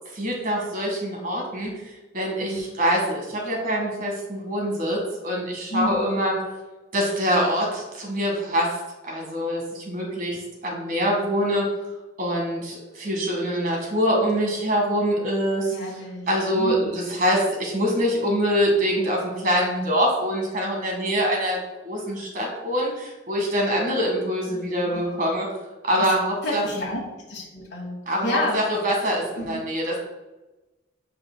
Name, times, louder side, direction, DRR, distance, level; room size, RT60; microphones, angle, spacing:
voice 1, 0.1-1.7 2.1-6.3 6.9-8.8 9.1-11.7 12.2-15.8 16.3-21.6 21.8-25.5 25.8-26.6 28.1-30.0, equal, 50° right, -1 dB, 1.8 m, -24 dB
voice 2, 5.7-6.0 15.7-16.3 16.5-16.9 24.5-25.2 26.0-26.1 26.4-27.0 27.3-28.6 29.4-29.6, left 1 dB, 65° left, -4 dB, 1.6 m, -31 dB
8.4 x 5.0 x 2.2 m, 1.1 s
head